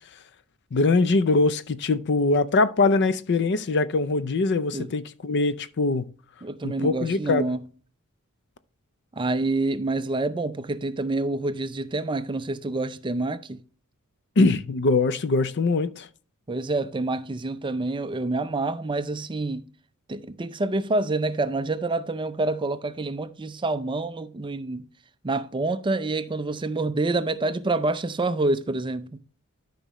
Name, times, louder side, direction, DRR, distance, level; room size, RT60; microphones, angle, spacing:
voice 1, 0.7-6.1 6.6-7.5 14.4-16.1, left 3 dB, 50° left, 0.5 m, -22 dB
voice 2, 6.4-7.6 9.1-13.6 16.5-19.7 20.1-24.9 25.2-29.2, right 2 dB, 20° right, 0.5 m, -27 dB
12.5 x 5.4 x 3.0 m
head